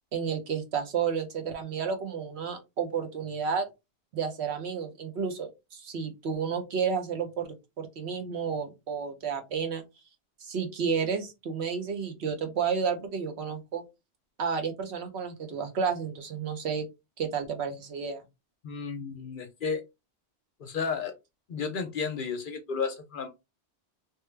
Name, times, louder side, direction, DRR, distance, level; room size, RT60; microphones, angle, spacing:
voice 1, 0.1-3.7 4.1-9.8 10.4-13.8 14.4-16.9 17.2-18.2, right 6 dB, 70° right, 5 dB, 1.1 m, -31 dB
voice 2, 18.6-19.8 20.6-21.2 21.5-23.3, left 5 dB, 60° left, 7 dB, 0.6 m, -32 dB
3.1 x 2.2 x 3.2 m, 0.23 s
omnidirectional pair, 1.1 m